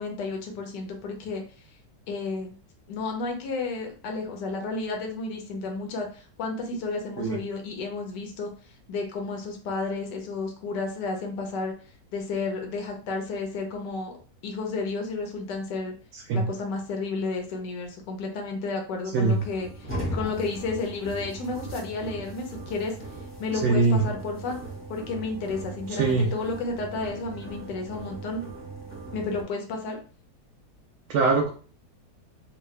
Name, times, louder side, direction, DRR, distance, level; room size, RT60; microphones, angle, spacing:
voice 1, 0.0-1.4 2.1-2.5 2.9-8.5 8.9-11.7 12.1-14.1 14.4-15.9 16.3-22.9 23.4-24.6 24.9-28.4 29.1-30.0, left 3 dB, 90° left, 2 dB, 1.4 m, -32 dB
voice 2, 16.1-16.4 19.1-19.4 23.6-24.0 25.9-26.3 31.1-31.5, right 4 dB, 70° right, 0 dB, 1.1 m, -22 dB
sound 1, 19.2-29.4, right 1 dB, 10° left, 0.8 m, -38 dB
3.7 x 2.2 x 3.1 m, 0.39 s
omnidirectional pair, 1.8 m